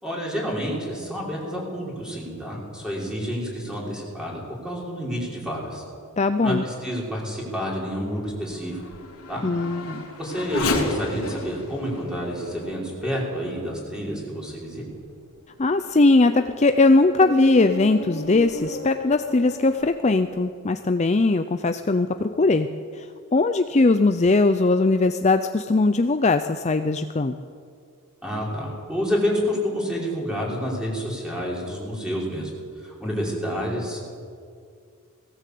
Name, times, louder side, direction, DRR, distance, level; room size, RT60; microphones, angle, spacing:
voice 1, 0.0-5.8 6.4-8.8 9.3-9.4 10.2-14.8 28.2-32.5 32.8-34.0, equal, 5° right, -4 dB, 5.4 m, -29 dB
voice 2, 6.2-6.6 9.4-10.0 15.6-22.7 23.0-23.1 23.3-27.3, left 3 dB, 30° left, 8 dB, 0.6 m, -20 dB
Race car auto racing / Accelerating revving vroom, 6.7-14.3 14.9-15.0 15.6-20.4, left 2 dB, 80° left, 3.3 m, -34 dB
19.0 x 17.0 x 8.5 m, 2.3 s
head